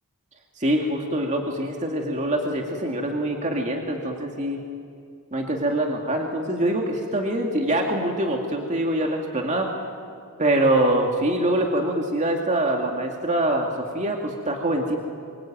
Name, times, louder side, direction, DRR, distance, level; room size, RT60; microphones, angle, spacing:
voice 1, 0.6-4.6 5.3-9.7 10.4-15.0, right 1 dB, 35° right, 1 dB, 2.3 m, -24 dB
26.5 x 24.5 x 9.0 m, 2.2 s
head